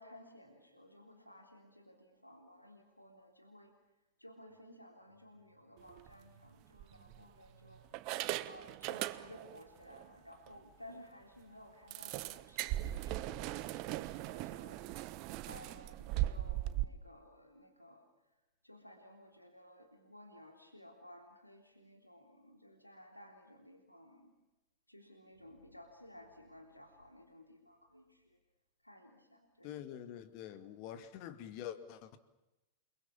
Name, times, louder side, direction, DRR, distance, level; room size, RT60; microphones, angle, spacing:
voice 1, 0.0-3.7 4.2-14.8 15.4-18.0 18.6-24.3 24.9-28.2 28.8-29.7, left 1 dB, 90° left, 3.6 m, -57 dB
sound 1, 5.9-6.1 6.8-7.5 7.9-9.6 9.9-10.1 10.5-10.6 10.9-11.0 11.9-16.8, right 15 dB, 40° right, 1.2 m, -39 dB
voice 2, 29.6-32.2, left 10 dB, 45° left, 2.3 m, -46 dB
29.5 x 22.5 x 7.3 m
figure-of-eight pair, 90°, 0 cm